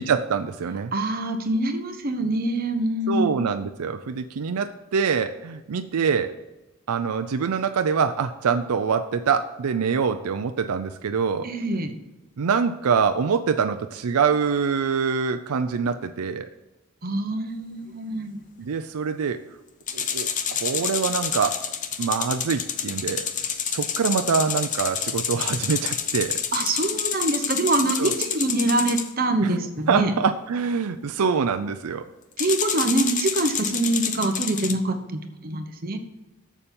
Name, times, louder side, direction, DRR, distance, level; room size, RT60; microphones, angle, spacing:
voice 1, 0.0-0.9 3.1-6.3 6.9-11.5 12.4-16.5 18.6-19.4 19.9-21.6 22.0-23.3 23.6-26.4 28.0-28.2 29.4-29.6 29.9-32.1, right 6 dB, 90° right, 8 dB, 0.5 m, -25 dB
voice 2, 0.9-3.3 11.4-11.9 17.0-18.4 26.5-30.1 32.4-36.0, right 2 dB, 40° right, 6 dB, 0.9 m, -25 dB
sound 1, 19.9-29.1 32.4-34.7, left 7 dB, 35° left, 0.6 m, -28 dB
7.1 x 6.9 x 5.3 m, 1.0 s
head